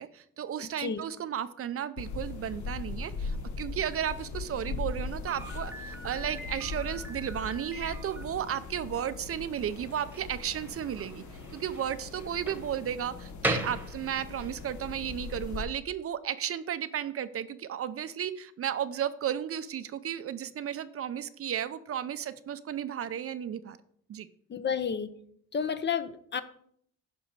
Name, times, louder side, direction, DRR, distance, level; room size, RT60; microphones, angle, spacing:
voice 1, 0.0-11.2 11.5-23.8 24.1-24.3, right 9 dB, 50° right, 13 dB, 0.6 m, -34 dB
sound 1, 2.0-15.7, left 4 dB, 70° left, 1.1 m, -40 dB
Slam, 5.3-14.6, right 1 dB, 5° right, 1.2 m, -40 dB
voice 2, 24.5-25.1 25.5-26.4, left 7 dB, 35° left, 12 dB, 0.7 m, -31 dB
10.0 x 5.4 x 4.6 m, 0.67 s
cardioid pair, 90°, 30 cm